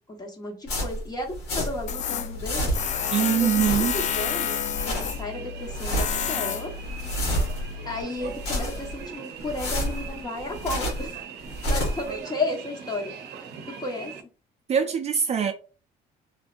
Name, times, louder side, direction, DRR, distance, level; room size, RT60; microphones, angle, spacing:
voice 1, 0.1-2.8 3.2-6.7 7.8-11.2 11.7-13.1 13.8-14.1, left 2 dB, 25° left, 1.2 m, -33 dB
sound 1, 0.7-3.0 3.4-4.2 4.6-5.2 5.6-6.3 6.7-7.7 8.2-9.0 9.4-11.1 11.4-12.1, equal, 90° left, 1.7 m, -29 dB
Tools, 1.9-8.0, left 8 dB, 45° left, 0.4 m, -30 dB
sound 2, 2.7-14.2, right 6 dB, 75° right, 0.7 m, -41 dB
voice 2, 3.1-3.9 14.7-15.5, right 8 dB, 40° right, 0.4 m, -23 dB
3.2 x 2.8 x 2.5 m
cardioid pair, 110°, 17 cm